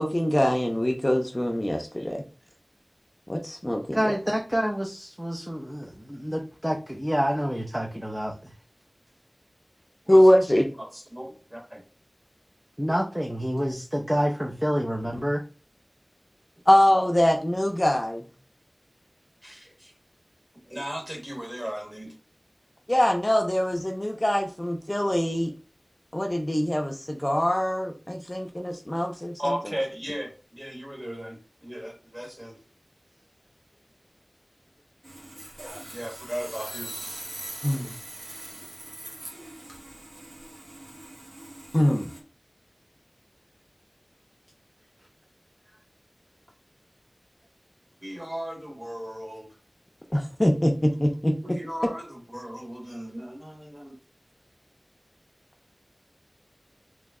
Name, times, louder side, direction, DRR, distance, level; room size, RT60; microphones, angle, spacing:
voice 1, 0.0-2.2 3.3-4.0 10.1-10.7 16.7-18.2 22.9-25.5 26.1-29.3 37.6-37.9 41.7-42.1 50.1-51.3, left 1 dB, 30° left, 3 dB, 0.6 m, -23 dB
voice 2, 3.9-8.5 12.8-15.4, equal, 10° right, -1 dB, 0.7 m, -28 dB
voice 3, 10.0-10.4 10.8-11.8 19.4-19.9 20.6-22.2 29.4-32.6 35.5-37.1 48.0-49.6 51.4-53.9, equal, 25° right, 1 dB, 1.7 m, -36 dB
Sawing, 35.0-42.2, right 1 dB, 80° right, 1.0 m, -42 dB
3.2 x 3.0 x 3.6 m, 0.35 s
wide cardioid pair, 45°, 0 cm